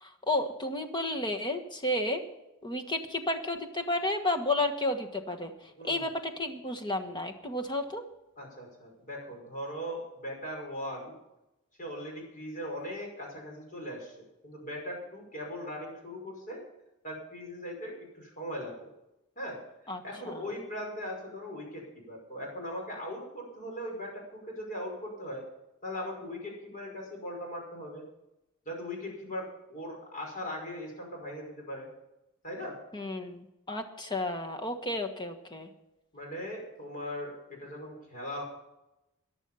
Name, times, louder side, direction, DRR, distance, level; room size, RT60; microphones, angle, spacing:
voice 1, 0.0-2.2 2.6-5.5 5.8-8.0 19.9-20.0 20.3-20.4 32.9-35.7, left 1 dB, 20° left, 5 dB, 1.4 m, -32 dB
voice 2, 5.8-6.1 8.4-11.1 11.8-16.6 17.0-18.9 19.4-19.6 20.0-25.4 25.8-28.0 28.7-31.9 32.4-32.8 36.1-38.4, equal, 40° left, 0 dB, 5.5 m, -39 dB
14.5 x 11.0 x 5.6 m, 0.91 s
head